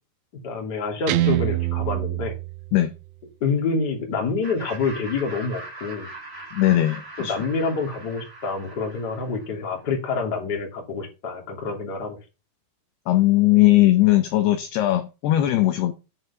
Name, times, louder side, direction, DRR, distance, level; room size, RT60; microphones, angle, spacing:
voice 1, 0.4-2.3 3.4-6.1 7.2-12.2, left 4 dB, 30° left, 2.2 m, -27 dB
Guitar, 1.1-3.1, right 15 dB, 80° right, 2.6 m, -25 dB
Laughter, 4.4-9.7, right 2 dB, 15° right, 2.5 m, -41 dB
voice 2, 6.5-7.3 13.1-15.9, left 15 dB, 80° left, 2.4 m, -19 dB
9.5 x 5.6 x 5.8 m
omnidirectional pair, 5.6 m